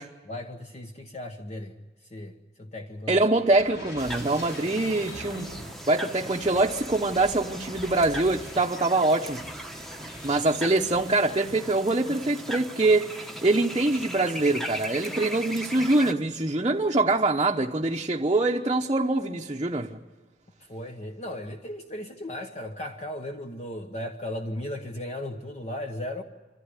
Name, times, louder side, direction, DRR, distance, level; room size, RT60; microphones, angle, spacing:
voice 1, 0.3-1.7 2.1-3.2 20.7-26.2, left 1 dB, 40° left, 4 dB, 1.1 m, -36 dB
voice 2, 3.1-5.5 5.9-9.4 10.2-20.0, right 2 dB, 30° right, 0 dB, 0.9 m, -24 dB
sound 1, 3.4-11.9 12.3-12.6, left 1 dB, 80° left, 5.7 m, -44 dB
sound 2, 4.0-16.1, right 1 dB, ahead, 1.1 m, -39 dB
25.0 x 15.0 x 9.8 m, 1.3 s
head